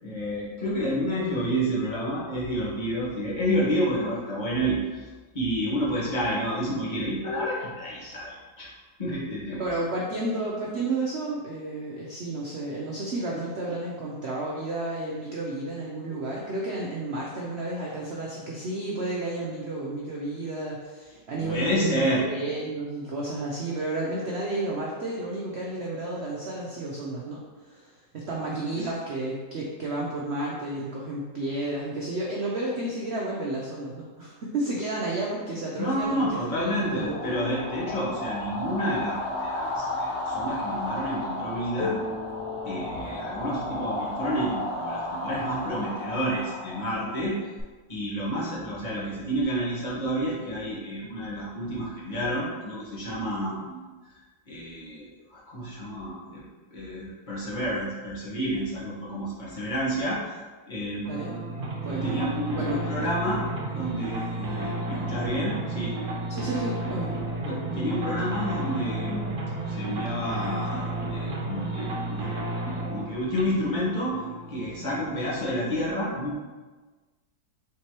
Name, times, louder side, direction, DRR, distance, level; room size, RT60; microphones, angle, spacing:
voice 1, 0.0-5.1 5.3-8.7 9.0-9.6 21.4-22.3 28.7-28.9 35.8-42.0 42.6-47.4 47.9-53.8 54.5-56.4 56.7-60.2 60.7-61.3 61.9-63.4 63.7-65.9 67.4-69.3 69.7-72.3 72.8-74.2 74.5-76.4, equal, 30° left, -6 dB, 1.0 m, -29 dB
voice 2, 9.6-37.5 61.1-61.4 61.7-62.3 62.5-62.8 66.3-67.1, right 2 dB, 85° right, -3 dB, 0.5 m, -32 dB
sound 1, 36.5-47.6, left 1 dB, 60° left, 0.7 m, -33 dB
sound 2, 41.8-45.5, left 4 dB, 85° left, 1.3 m, -37 dB
sound 3, 61.0-75.2, right 2 dB, 65° right, 1.3 m, -32 dB
4.6 x 3.7 x 2.9 m, 1.3 s
omnidirectional pair, 2.0 m